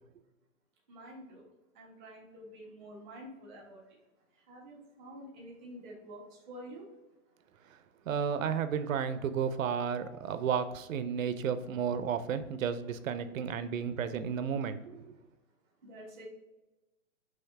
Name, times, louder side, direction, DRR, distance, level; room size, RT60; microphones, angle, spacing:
voice 1, 0.9-1.5 1.7-4.0 4.3-6.9 7.6-7.7 15.8-16.2, equal, 5° right, 0.3 m, -49 dB
voice 2, 8.1-15.1, right 7 dB, 70° right, 0.6 m, -32 dB
5.6 x 2.6 x 3.5 m
hypercardioid pair, 150°, 42 cm